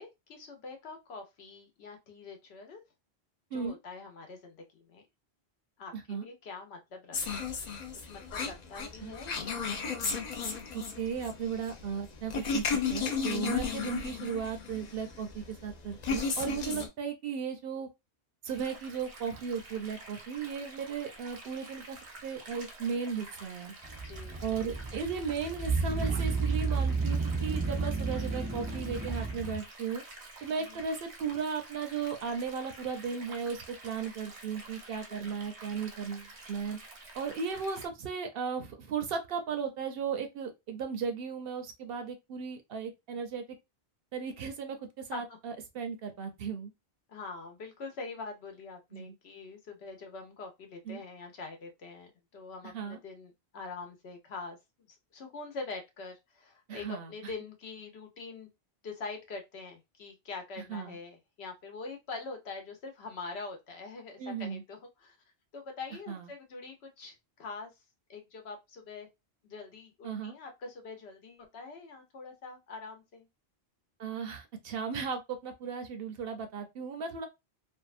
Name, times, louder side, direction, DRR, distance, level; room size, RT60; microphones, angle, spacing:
voice 1, 0.0-2.8 3.5-5.0 5.8-7.5 8.1-9.7 24.0-24.6 30.6-30.8 35.1-35.3 45.1-45.4 47.1-58.5 58.8-65.2 65.5-67.7 68.1-69.1 69.4-73.3, left 4 dB, 75° left, 1.0 m, -44 dB
voice 2, 5.9-6.2 9.0-9.1 10.7-12.6 12.9-17.9 18.4-22.0 22.2-23.7 24.4-30.0 30.4-36.8 37.1-43.4 44.1-46.7 48.9-49.1 50.9-51.0 52.7-53.0 56.7-57.1 60.7-61.0 64.2-64.6 66.1-66.3 70.0-70.4 74.0-77.3, right 6 dB, 65° right, 0.7 m, -36 dB
sound 1, 7.1-16.9, left 5 dB, 55° left, 0.5 m, -34 dB
sound 2, 18.5-37.9, right 2 dB, 90° right, 1.1 m, -49 dB
sound 3, 23.8-29.6, right 4 dB, 15° right, 0.3 m, -32 dB
2.7 x 2.2 x 2.4 m
omnidirectional pair, 1.1 m